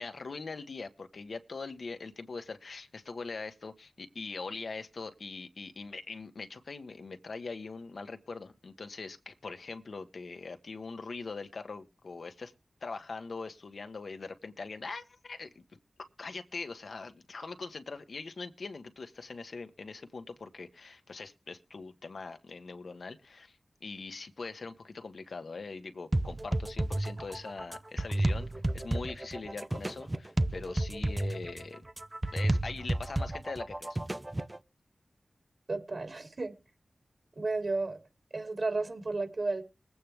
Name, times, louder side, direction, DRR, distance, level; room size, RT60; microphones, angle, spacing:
voice 1, 0.0-12.5 12.8-15.6 16.2-28.5 28.7-31.8 32.3-34.0, left 4 dB, 70° left, 7 dB, 1.5 m, -42 dB
sound 1, 26.1-34.6, right 1 dB, 20° right, 0.7 m, -32 dB
voice 2, 35.7-36.5 37.4-38.0 38.3-39.6, right 3 dB, 55° right, 4 dB, 3.7 m, -32 dB
21.0 x 8.6 x 3.5 m, 0.30 s
wide cardioid pair, 105°, 0 cm